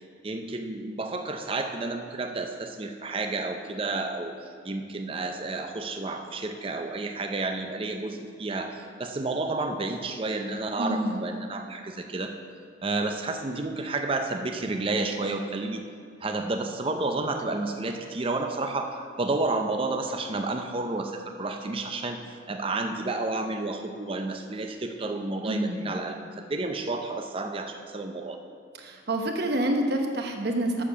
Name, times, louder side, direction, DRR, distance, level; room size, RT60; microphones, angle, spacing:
voice 1, 0.2-12.3 12.8-15.8 16.2-22.2 22.5-26.2 26.5-28.4, right 2 dB, 30° right, 5 dB, 0.5 m, -31 dB
voice 2, 10.8-11.2 25.4-25.9 28.8-30.8, right 1 dB, 55° right, 3 dB, 0.9 m, -27 dB
7.5 x 6.7 x 6.8 m, 2.2 s
head